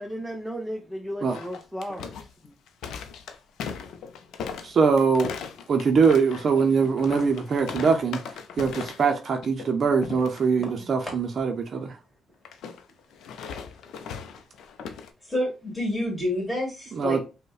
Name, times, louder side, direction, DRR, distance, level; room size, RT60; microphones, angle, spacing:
voice 1, 0.0-2.3, equal, 5° right, 0.6 m, -34 dB
sound 1, 1.3-9.2 9.4-9.7 10.0-10.4 12.4-15.1, left 6 dB, 80° left, 0.4 m, -38 dB
voice 2, 4.6-5.3 5.7-8.2 8.6-11.9 16.9-17.2, right 5 dB, 50° right, 0.5 m, -22 dB
voice 3, 10.6-10.9 15.3-17.2, left 1 dB, 10° left, 2.1 m, -29 dB
5.1 x 2.1 x 2.3 m
cardioid pair, 90°, 0 cm